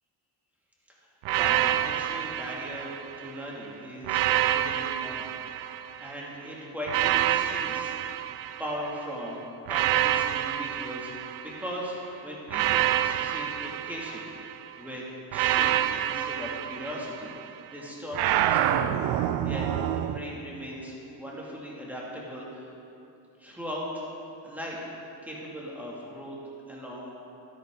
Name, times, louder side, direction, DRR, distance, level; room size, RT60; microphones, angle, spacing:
sound 1, 1.2-3.4 4.0-6.2 6.9-9.0 9.7-11.8 12.5-14.6 15.3-17.5 18.1-20.2, right 12 dB, 90° right, 0.6 m, -27 dB
voice 1, 1.4-2.9 3.2-5.3 5.7-8.1 8.6-9.4 9.7-15.0 15.3-18.2 18.5-19.0 19.4-22.7 23.4-24.1 24.4-24.9 25.2-26.4 26.7-27.1, equal, 5° right, -5 dB, 2.5 m, -38 dB
12.5 x 10.5 x 3.8 m, 2.8 s
cardioid pair, 115°, 39 cm